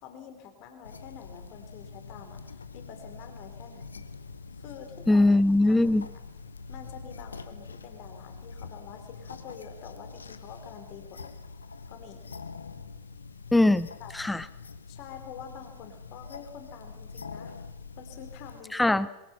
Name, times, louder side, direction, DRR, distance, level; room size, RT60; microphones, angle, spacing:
voice 1, 0.0-4.0 4.6-5.3 5.6-6.0 6.7-11.4 11.9-12.3 14.0-14.1 14.9-17.6 18.0-19.0, left 7 dB, 45° left, 6 dB, 3.2 m, -47 dB
sound 1, 0.8-18.6, left 4 dB, 75° left, 1.2 m, -45 dB
voice 2, 5.1-6.1 13.5-13.9 14.1-14.5 18.7-19.1, left 2 dB, 5° left, 18 dB, 0.7 m, -21 dB
22.5 x 22.5 x 5.7 m, 1.0 s
figure-of-eight pair, 90°, 0 cm